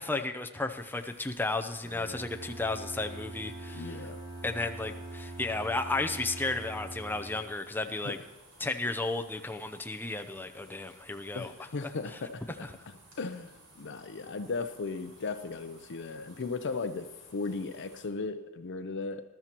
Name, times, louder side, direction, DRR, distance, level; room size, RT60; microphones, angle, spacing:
voice 1, 0.0-4.0 4.4-8.2 8.6-11.5, left 2 dB, 10° left, 5 dB, 0.6 m, -33 dB
sound 1, 0.8-18.1, right 1 dB, 80° right, 5.2 m, -58 dB
Bowed string instrument, 1.8-7.7, right 2 dB, 25° right, 2.8 m, -43 dB
voice 2, 3.7-4.2 8.0-8.2 11.3-19.2, left 4 dB, 55° left, 9 dB, 0.6 m, -37 dB
20.0 x 12.5 x 3.0 m, 1.1 s
head